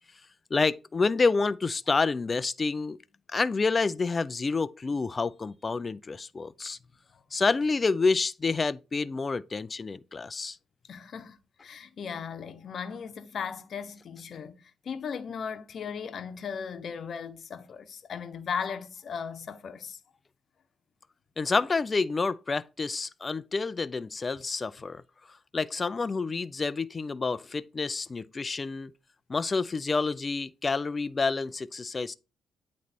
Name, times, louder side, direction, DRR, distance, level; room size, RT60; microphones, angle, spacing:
voice 1, 0.5-3.0 3.3-6.8 7.3-10.6 21.4-25.0 25.5-28.9 29.3-32.1, left 4 dB, 30° left, 0.4 m, -28 dB
voice 2, 10.9-20.0, left 6 dB, 55° left, 0.9 m, -37 dB
9.4 x 3.1 x 4.3 m
cardioid pair, 90°, 0 cm